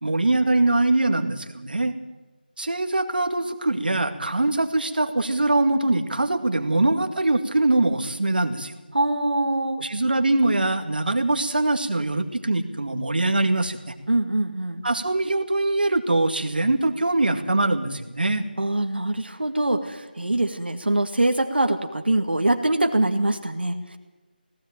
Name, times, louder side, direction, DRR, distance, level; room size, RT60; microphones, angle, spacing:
voice 1, 0.0-1.9 2.6-8.7 9.8-13.9 14.8-18.4, right 2 dB, 65° right, 7 dB, 2.2 m, -23 dB
voice 2, 8.9-9.8 14.1-14.8 18.6-24.0, right 1 dB, 80° right, 5 dB, 2.0 m, -23 dB
18.5 x 16.5 x 9.0 m, 1.1 s
figure-of-eight pair, 165°, 5 cm